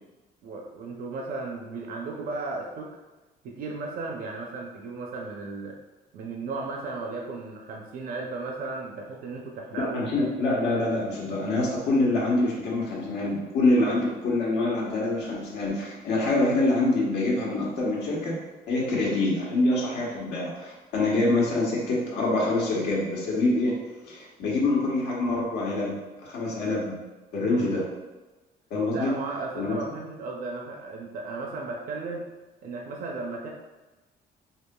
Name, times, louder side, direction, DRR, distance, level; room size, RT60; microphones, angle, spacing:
voice 1, 0.4-3.0 3.4-5.8 6.1-10.0 13.8-14.0 18.7-19.0 24.4-24.6 27.4-27.7 28.9-32.3 32.6-33.5, right 3 dB, 60° right, 0 dB, 0.5 m, -35 dB
voice 2, 9.7-18.4 18.7-23.7 24.1-26.9 27.3-27.8 28.7-29.1 29.5-29.8, left 2 dB, 80° left, -4 dB, 1.1 m, -25 dB
4.7 x 2.8 x 2.2 m, 1.2 s
cardioid pair, 155°, 17 cm